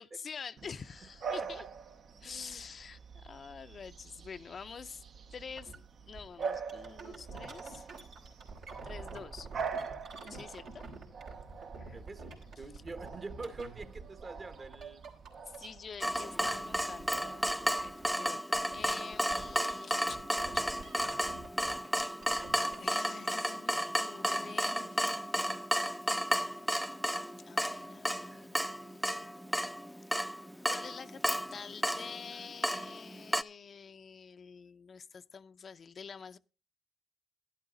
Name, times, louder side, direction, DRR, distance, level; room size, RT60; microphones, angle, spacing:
voice 1, 0.0-1.7 2.2-5.0 5.3-5.7 6.1-7.9 8.8-9.9 10.3-10.9 11.8-12.0 15.5-20.7 22.6-25.4 27.4-29.3 30.7-36.4, left 6 dB, 50° left, 0.5 m, -47 dB
Bark / Bird vocalization bird call bird song, 0.6-18.1, right 5 dB, 60° right, 0.7 m, -45 dB
voice 2, 2.2-2.6 11.9-15.0, right 3 dB, 40° right, 1.3 m, -45 dB
sound 1, 5.6-5.8 6.2-17.2 17.5-18.3 18.5-22.9, right 4 dB, 75° right, 3.1 m, -48 dB
Water tap faucet / Drip, 16.0-33.4, equal, ahead, 0.5 m, -33 dB
11.5 x 11.0 x 3.8 m
supercardioid pair, 60°, 0 cm